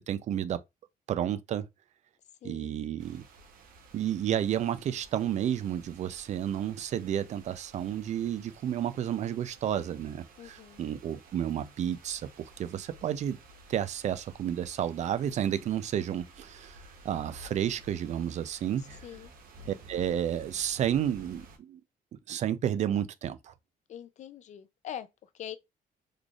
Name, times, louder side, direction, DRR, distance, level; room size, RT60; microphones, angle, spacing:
voice 1, 0.1-0.6 1.1-1.7 2.4-3.2 3.9-13.4 13.7-19.0 19.9-21.8 22.1-23.5, right 10 dB, 50° right, 0.4 m, -31 dB
voice 2, 2.4-2.8 10.4-10.8 18.8-19.3 23.9-25.6, left 10 dB, 50° left, 0.4 m, -43 dB
sound 1, 3.0-21.6, right 2 dB, 70° right, 0.8 m, -53 dB
3.9 x 3.2 x 2.3 m
cardioid pair, 150°, 15 cm